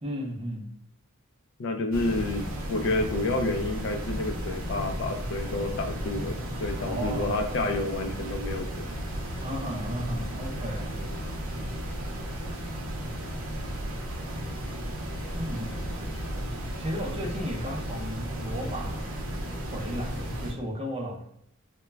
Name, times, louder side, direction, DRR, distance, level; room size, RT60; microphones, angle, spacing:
voice 1, 0.0-0.7 6.5-7.6 9.4-11.1 15.3-16.3 16.8-19.2 19.7-21.2, equal, 25° right, -1 dB, 0.6 m, -35 dB
voice 2, 1.6-8.8, left 2 dB, 60° left, 5 dB, 0.4 m, -29 dB
sound 1, 1.9-20.5, equal, 70° right, 0.6 m, -34 dB
2.2 x 2.1 x 3.3 m, 0.72 s
head